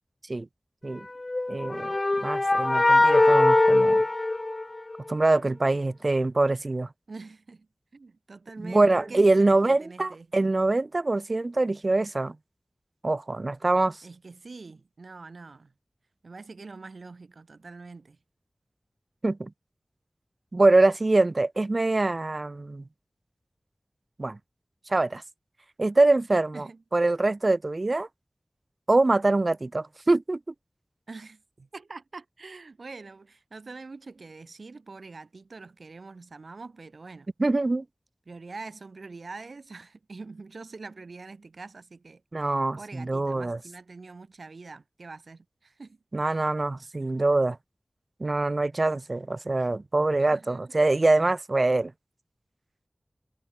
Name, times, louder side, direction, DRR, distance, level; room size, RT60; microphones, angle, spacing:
sound 1, 1.2-5.1, left 2 dB, 45° left, 0.5 m, -21 dB
voice 1, 1.5-1.9 2.2-4.0 5.1-6.9 8.6-12.4 13.0-14.0 19.2-19.5 20.5-22.8 24.2-24.4 24.9-25.2 25.8-26.6 26.9-28.1 28.9-30.4 37.4-37.8 42.3-43.6 46.1-47.6 48.2-51.9, right 2 dB, 50° right, 0.9 m, -24 dB
voice 2, 7.1-10.3 14.0-15.7 16.2-18.2 26.5-26.8 31.1-37.3 38.3-46.0 50.2-50.7, right 3 dB, 85° right, 4.4 m, -44 dB
wide cardioid pair, 60°, 0 cm